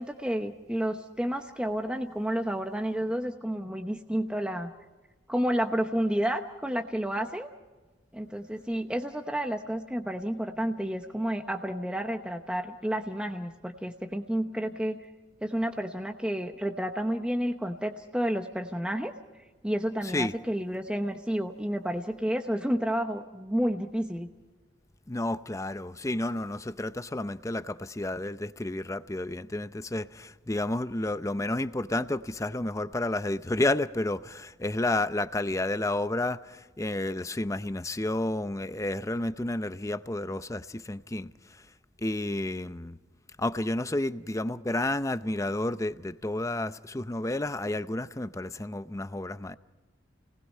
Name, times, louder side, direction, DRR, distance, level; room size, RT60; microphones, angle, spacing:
voice 1, 0.0-4.7 5.3-7.5 8.1-15.0 15.4-19.1 19.6-24.3, equal, 5° right, 0.9 m, -30 dB
voice 2, 25.1-41.7 42.0-43.0 43.4-49.6, left 2 dB, 15° left, 0.6 m, -31 dB
29.5 x 19.5 x 5.5 m
head